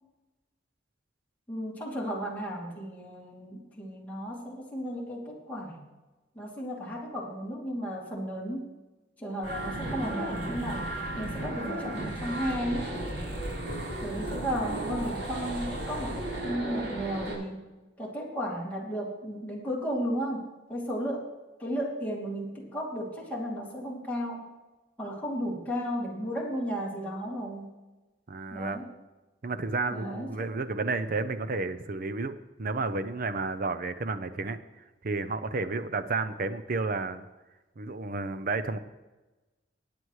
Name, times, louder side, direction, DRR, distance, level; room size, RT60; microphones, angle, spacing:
voice 1, 1.5-5.8 6.3-8.7 9.2-10.9 11.2-12.9 14.0-17.6 18.0-21.3 21.6-24.5 25.0-27.7 28.5-28.8 29.9-30.5, equal, 10° left, -5 dB, 2.8 m, -34 dB
sound 1, 9.4-17.3, right 1 dB, 85° right, 5.1 m, -34 dB
voice 2, 28.3-28.8 29.4-34.6 35.0-37.3 37.8-38.8, right 3 dB, 50° right, 10 dB, 0.6 m, -31 dB
23.5 x 9.4 x 3.2 m, 1.1 s
head